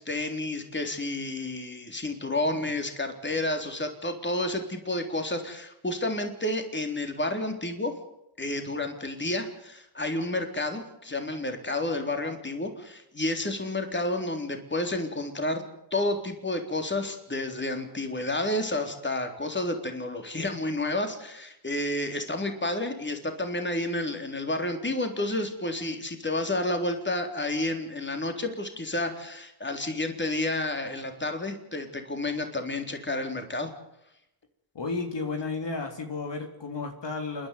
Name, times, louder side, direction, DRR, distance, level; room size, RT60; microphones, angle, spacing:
voice 1, 0.0-7.9 8.4-15.6 15.9-33.7, left 2 dB, 20° left, 5 dB, 3.7 m, -30 dB
voice 2, 34.7-37.5, left 3 dB, 55° left, 4 dB, 3.5 m, -33 dB
28.0 x 11.0 x 9.5 m, 0.83 s
cardioid pair, 55°, 50 cm